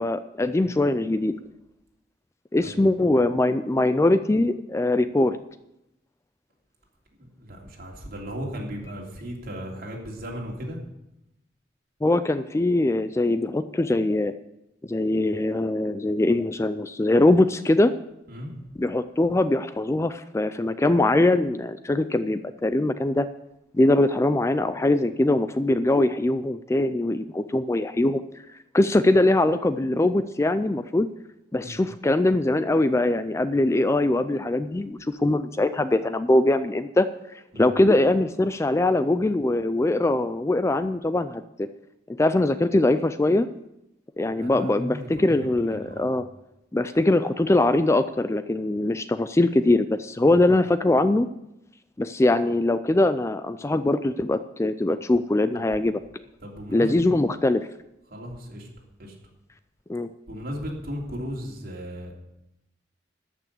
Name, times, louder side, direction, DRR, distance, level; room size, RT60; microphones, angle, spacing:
voice 1, 0.0-1.4 2.5-5.4 12.0-14.3 14.9-17.9 18.8-23.3 23.7-28.2 28.7-31.1 31.5-37.1 37.6-41.7 42.2-43.5 44.2-46.2 46.7-51.3 52.0-56.0 56.7-57.7 59.9-60.1, left 2 dB, 15° left, 12 dB, 0.3 m, -22 dB
voice 2, 7.2-10.8 18.3-18.5 31.6-31.8 37.5-37.7 44.4-46.1 50.2-50.4 55.5-55.6 56.4-57.0 58.1-58.7 59.0-59.1 60.3-62.1, equal, 55° right, -1 dB, 3.1 m, -36 dB
13.5 x 6.1 x 8.2 m, 0.87 s
head